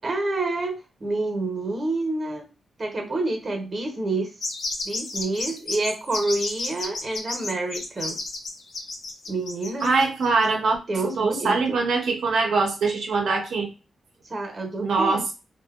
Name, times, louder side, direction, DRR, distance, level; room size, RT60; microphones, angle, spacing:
voice 1, 0.0-2.4 2.8-4.3 4.9-8.2 9.3-9.9 10.9-11.8 14.3-15.2, right 2 dB, 35° right, 3 dB, 0.6 m, -28 dB
sound 1, 4.4-10.5, left 2 dB, 55° left, 0.5 m, -32 dB
voice 2, 9.8-10.8 11.2-13.7 14.8-15.3, right 4 dB, 85° right, 1 dB, 0.5 m, -23 dB
2.8 x 2.1 x 2.3 m, 0.30 s
wide cardioid pair, 130°, 0 cm